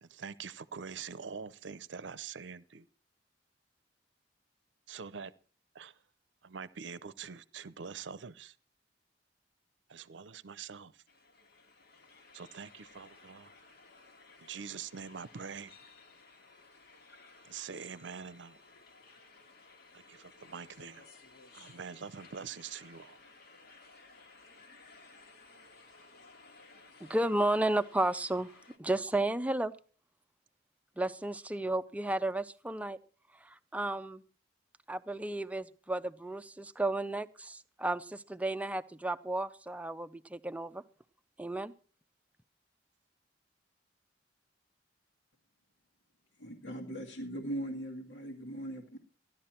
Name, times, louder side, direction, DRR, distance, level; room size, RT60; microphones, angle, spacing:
voice 1, 0.0-2.9 4.9-5.3 5.7-6.0 6.4-8.6 9.9-11.0 12.3-13.5 14.4-15.7 17.4-18.6 19.9-21.1 21.5-23.2, right 6 dB, 80° right, 0.7 m, -44 dB
sound 1, 11.1-28.8, left 3 dB, 60° left, 1.8 m, -57 dB
voice 2, 27.0-28.5 28.8-29.7 31.0-33.0 33.7-34.2 34.9-40.8 41.4-41.7, right 1 dB, 10° right, 0.6 m, -33 dB
voice 3, 46.4-49.0, right 1 dB, 80° left, 2.1 m, -40 dB
15.0 x 11.0 x 4.4 m
head